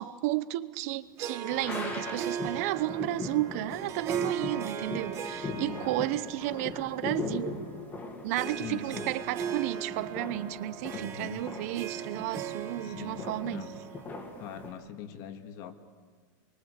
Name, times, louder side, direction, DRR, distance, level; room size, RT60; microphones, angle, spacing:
voice 1, 0.0-7.6 8.2-13.6, right 15 dB, 50° right, 1.0 m, -33 dB
Harp, 1.2-14.8, right 8 dB, 25° right, 1.6 m, -39 dB
sound 1, 1.5-14.7, left 3 dB, 15° left, 2.4 m, -40 dB
voice 2, 5.5-6.0 8.5-9.1 10.9-11.4 12.8-13.8 14.4-15.7, left 8 dB, 35° left, 2.2 m, -42 dB
26.5 x 23.5 x 8.3 m
supercardioid pair, 165°, 11 cm